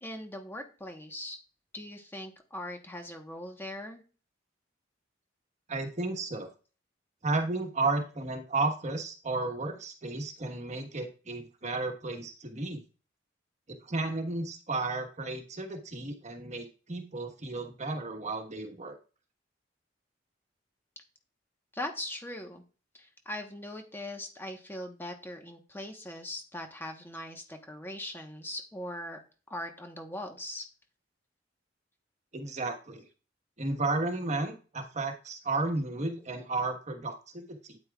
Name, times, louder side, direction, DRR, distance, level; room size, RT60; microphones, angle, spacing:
voice 1, 0.0-1.4 1.7-4.0 21.7-22.6 22.9-29.2 29.5-30.6, left 1 dB, 10° left, 4 dB, 1.1 m, -40 dB
voice 2, 5.7-6.5 7.2-12.8 13.7-19.0 32.3-33.0 33.6-37.8, right 3 dB, 40° right, 5 dB, 1.3 m, -33 dB
8.9 x 8.7 x 2.3 m, 0.35 s
head